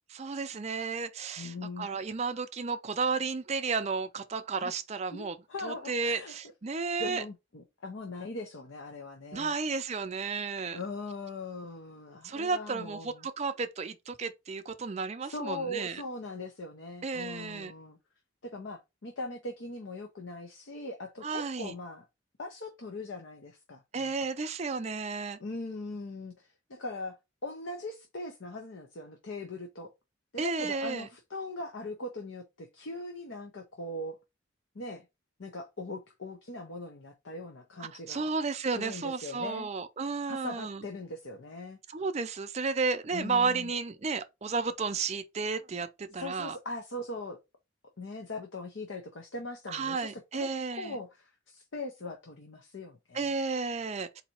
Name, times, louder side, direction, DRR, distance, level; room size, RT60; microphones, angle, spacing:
voice 1, 0.1-5.4 5.6-7.2 9.3-10.8 12.2-16.0 17.0-17.7 21.2-21.7 23.9-25.4 30.4-31.1 37.8-40.8 41.9-46.6 49.7-51.0 53.1-54.2, right 4 dB, 30° right, 0.4 m, -33 dB
voice 2, 1.4-1.9 4.6-4.7 5.1-6.3 7.0-9.5 10.7-13.3 15.2-18.0 18.4-22.1 22.4-24.1 25.4-29.9 30.3-34.2 34.7-35.1 35.4-38.3 38.7-39.7 40.3-41.8 43.1-43.7 46.1-47.4 48.0-50.5 50.7-53.4, left 2 dB, 65° left, 0.7 m, -40 dB
4.0 x 2.7 x 4.3 m
head